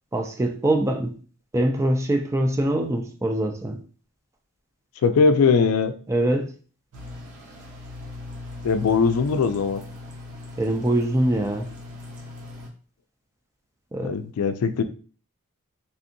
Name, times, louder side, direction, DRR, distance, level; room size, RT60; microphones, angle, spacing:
voice 1, 0.1-1.1 1.5-3.8 6.1-6.5 10.6-11.7 13.9-14.1, right 1 dB, 15° right, 4 dB, 0.3 m, -23 dB
voice 2, 5.0-5.9 8.6-9.8 14.0-14.8, left 5 dB, 80° left, 10 dB, 0.3 m, -20 dB
sound 1, 6.9-12.7, left 2 dB, 90° right, 1.0 m, -39 dB
3.3 x 2.6 x 2.6 m, 0.40 s
head